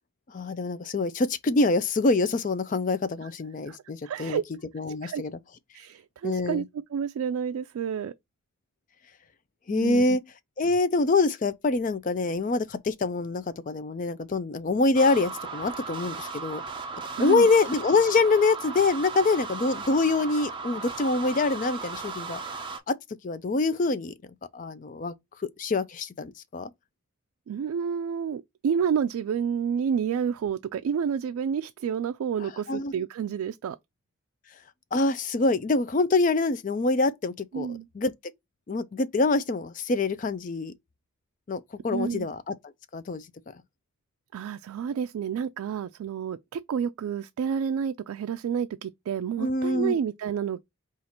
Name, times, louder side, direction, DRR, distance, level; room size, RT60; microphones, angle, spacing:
voice 1, 0.3-4.4 4.7-5.3 6.2-6.6 9.7-10.2 10.6-16.6 17.2-22.4 22.9-23.0 23.2-24.1 24.5-25.1 25.6-26.7 32.7-32.9 34.9-37.7 37.9-38.1 38.7-40.7 41.5-42.5 42.9-43.3 49.4-50.0, left 3 dB, 35° left, 0.4 m, -25 dB
voice 2, 4.0-4.4 5.0-5.2 5.7-6.6 6.9-8.1 9.7-10.0 17.2-17.5 27.5-33.8 37.5-37.9 41.9-42.3 44.3-50.6, right 7 dB, 85° right, 0.3 m, -29 dB
sound 1, 14.9-22.8, right 4 dB, 25° right, 0.5 m, -36 dB
4.3 x 2.5 x 4.2 m
head